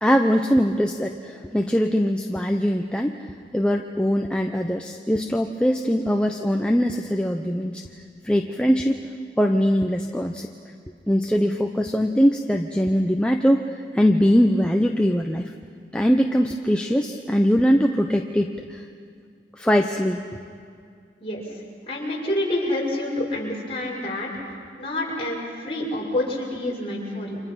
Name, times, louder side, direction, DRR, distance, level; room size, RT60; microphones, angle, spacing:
voice 1, 0.0-3.3 3.5-7.8 8.2-9.0 9.4-10.5 11.1-15.5 15.9-18.8 19.6-20.4, equal, 5° left, 2 dB, 0.7 m, -21 dB
voice 2, 21.9-24.3 24.8-27.4, left 1 dB, 30° left, -4 dB, 6.3 m, -27 dB
30.0 x 26.5 x 5.7 m, 2.3 s
head